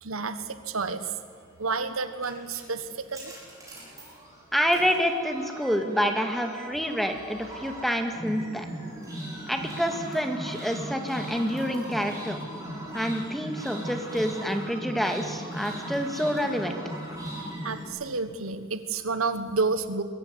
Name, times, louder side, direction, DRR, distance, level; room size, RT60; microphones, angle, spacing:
voice 1, 0.0-1.1 1.6-3.3 17.4-20.0, right 4 dB, 85° right, 11 dB, 1.5 m, -30 dB
sound 1, 1.6-17.9, right 1 dB, 15° right, 6.7 m, -38 dB
voice 2, 4.5-8.7 9.5-12.4 12.9-16.8, equal, ahead, 5 dB, 1.9 m, -27 dB
22.0 x 15.5 x 9.7 m, 2.2 s
head